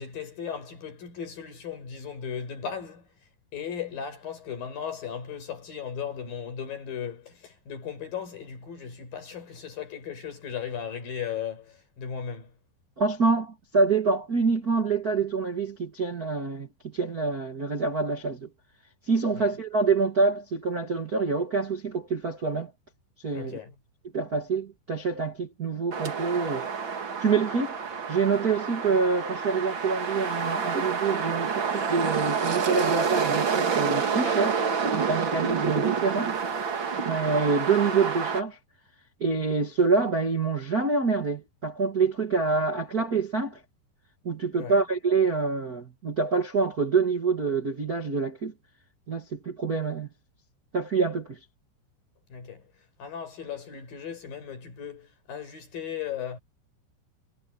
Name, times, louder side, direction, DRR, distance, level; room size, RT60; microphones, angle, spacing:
voice 1, 0.0-3.1 3.5-12.5 19.3-19.5 23.3-23.7 44.5-44.8 52.3-52.7 53.0-56.4, left 7 dB, 50° left, 6.7 m, -36 dB
voice 2, 13.0-18.5 19.1-22.7 23.2-23.6 24.1-26.7 27.2-27.7 28.1-34.6 34.9-36.3 37.0-38.6 39.2-43.6 44.2-48.5 49.1-50.1 50.7-51.4, right 4 dB, 80° right, 0.8 m, -26 dB
sound 1, 25.9-38.4, right 6 dB, 50° right, 1.4 m, -28 dB
omnidirectional pair, 5.2 m